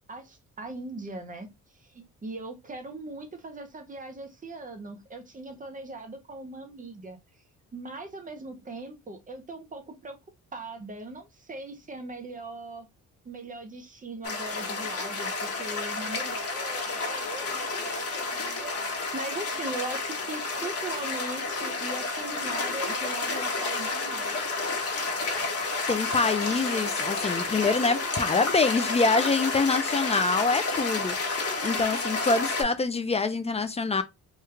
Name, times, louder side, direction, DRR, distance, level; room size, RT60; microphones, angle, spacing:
voice 1, 0.1-7.2 7.7-10.2 10.5-12.9 13.2-24.7, right 2 dB, 25° right, 0.7 m, -40 dB
sound 1, 14.2-32.6, left 3 dB, 50° left, 1.1 m, -30 dB
voice 2, 25.9-34.0, left 4 dB, 20° left, 0.3 m, -25 dB
3.1 x 2.3 x 3.1 m
cardioid pair, 120°, 31 cm